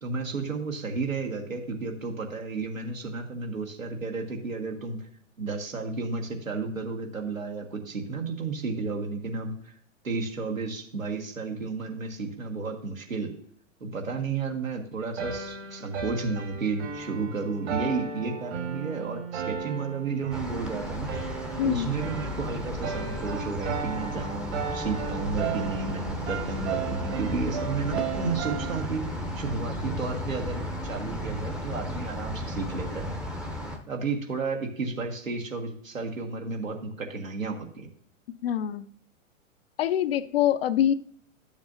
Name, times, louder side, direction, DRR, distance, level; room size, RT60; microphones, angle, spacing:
voice 1, 0.0-5.1 5.4-9.5 10.0-13.3 13.8-21.1 21.6-29.1 29.3-33.1 33.9-37.9, right 4 dB, 85° right, 1.7 m, -32 dB
sound 1, 15.2-28.8, right 6 dB, 55° right, 1.8 m, -35 dB
sound 2, 20.3-33.8, equal, ahead, 0.6 m, -34 dB
voice 2, 21.6-21.9 38.4-38.9 39.8-40.9, left 10 dB, 50° left, 0.5 m, -24 dB
12.0 x 7.1 x 2.6 m
figure-of-eight pair, 105°, 39 cm